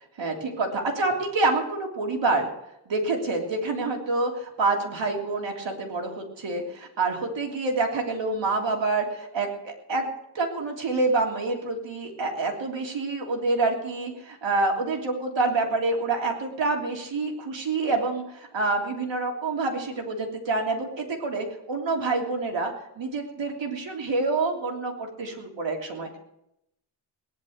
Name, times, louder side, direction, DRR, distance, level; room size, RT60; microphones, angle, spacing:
voice 1, 0.2-2.5 2.9-26.2, right 3 dB, 80° right, 1 dB, 3.3 m, -27 dB
19.0 x 11.0 x 6.5 m, 0.83 s
wide cardioid pair, 150°, 44 cm